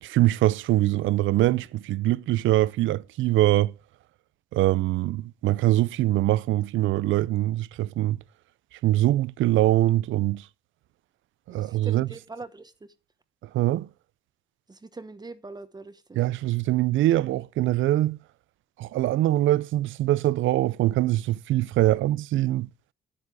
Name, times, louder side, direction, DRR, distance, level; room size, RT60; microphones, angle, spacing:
voice 1, 0.0-3.7 4.5-8.2 8.8-10.5 11.5-12.1 13.5-13.9 16.2-18.2 18.8-22.7, right 15 dB, 75° right, 0.5 m, -23 dB
voice 2, 11.5-12.7 14.7-16.2 21.8-22.0, right 3 dB, 20° right, 1.1 m, -42 dB
9.7 x 8.3 x 4.9 m
cardioid pair, 90°, 20 cm